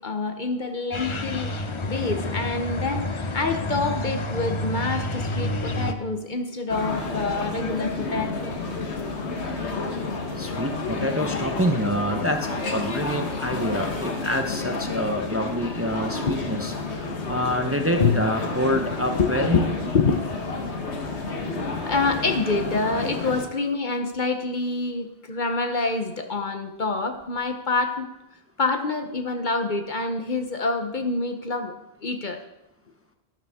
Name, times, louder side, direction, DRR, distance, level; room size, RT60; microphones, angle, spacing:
voice 1, 0.0-1.5 1.8-8.5 16.0-16.5 18.0-18.1 19.2-20.4 21.4-28.1 28.6-31.7 32.0-32.4, left 3 dB, 50° left, 6 dB, 1.0 m, -26 dB
sound 1, 0.9-5.9, left 1 dB, 35° left, 0.6 m, -29 dB
sound 2, 6.7-23.4, left 3 dB, 80° left, 1.5 m, -30 dB
voice 2, 10.4-19.7, equal, 15° right, 4 dB, 0.8 m, -27 dB
12.5 x 12.0 x 3.6 m, 0.94 s
omnidirectional pair, 1.1 m